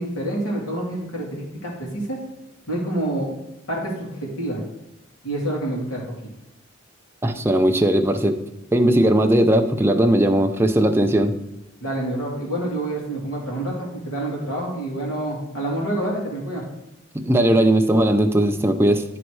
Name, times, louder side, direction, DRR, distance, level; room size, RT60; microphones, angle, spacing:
voice 1, 0.0-2.2 2.7-3.3 3.7-4.6 5.2-6.0 11.8-16.6, right 1 dB, 90° left, -3 dB, 2.8 m, -27 dB
voice 2, 7.2-8.4 8.7-11.4 17.1-19.0, right 1 dB, 10° right, 5 dB, 0.5 m, -18 dB
11.0 x 4.1 x 4.7 m, 0.91 s
head